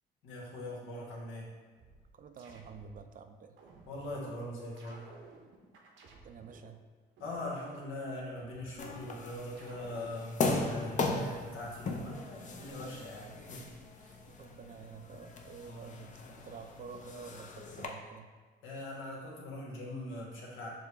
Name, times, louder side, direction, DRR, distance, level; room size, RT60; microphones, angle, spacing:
voice 1, 0.2-1.5 3.9-5.1 7.2-13.7 14.0-14.2 15.6-16.1 18.6-20.7, left 1 dB, 80° left, -3 dB, 1.3 m, -42 dB
sound 1, 1.8-3.1 3.6-4.3 4.8-6.7 7.2-9.1 9.6-10.3, right 3 dB, 75° right, 0.8 m, -55 dB
voice 2, 2.1-3.6 6.2-6.8 14.0-18.3, right 5 dB, 45° right, 8 dB, 0.4 m, -49 dB
sound 2, 8.8-17.9, left 3 dB, 40° left, 0.6 m, -38 dB
6.6 x 2.3 x 3.3 m, 1.4 s
cardioid pair, 90°, 20 cm